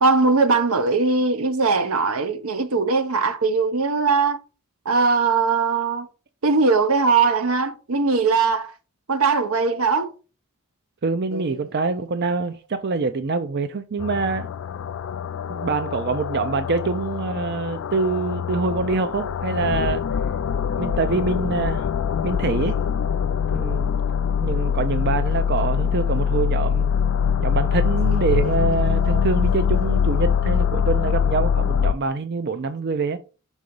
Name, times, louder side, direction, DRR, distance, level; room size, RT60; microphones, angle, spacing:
voice 1, 0.0-4.4 4.9-6.1 6.4-8.7 9.1-10.1 11.3-11.4 28.9-29.2, right 4 dB, 80° right, 0.9 m, -20 dB
voice 2, 11.0-14.5 15.5-20.0 20.8-21.9 22.2-22.8 23.5-23.9 24.4-26.9 27.4-33.2, right 4 dB, 50° right, 0.5 m, -25 dB
sound 1, 14.0-31.9, left 7 dB, 70° left, 0.4 m, -23 dB
6.3 x 3.8 x 5.3 m
head